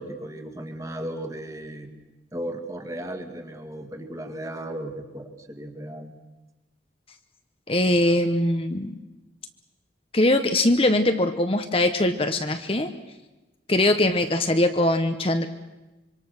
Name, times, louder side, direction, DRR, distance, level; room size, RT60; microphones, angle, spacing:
voice 1, 0.0-1.9 2.3-6.1, right 1 dB, 15° right, 6 dB, 2.0 m, -35 dB
voice 2, 7.7-8.9 10.1-12.9 13.7-15.5, left 1 dB, 30° left, 7 dB, 1.0 m, -21 dB
26.0 x 24.5 x 6.5 m, 1.1 s
head